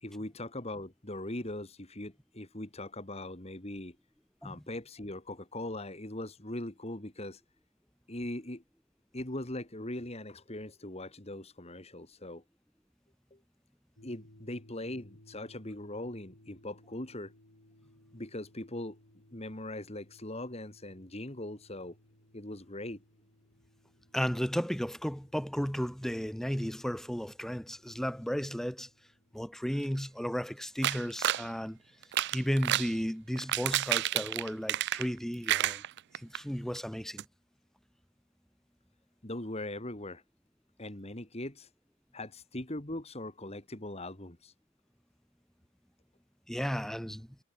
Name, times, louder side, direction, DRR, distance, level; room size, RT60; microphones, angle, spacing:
voice 1, 0.0-4.0 4.4-7.4 8.1-8.6 9.1-12.4 13.3-13.4 14.0-17.3 18.1-19.0 19.3-22.0 22.3-23.0 39.2-40.2 40.8-41.7 42.1-44.5, left 1 dB, 30° left, 2.3 m, -40 dB
sound 1, 14.0-29.8, left 1 dB, 80° left, 5.0 m, -62 dB
voice 2, 24.1-28.9 29.3-31.8 32.3-35.8 36.1-37.2 46.5-47.3, equal, ahead, 0.7 m, -34 dB
sound 2, 30.8-31.5 32.0-32.9 33.4-35.2 35.5-36.4 36.8-36.9 37.2-37.3, right 13 dB, 55° right, 0.4 m, -30 dB
head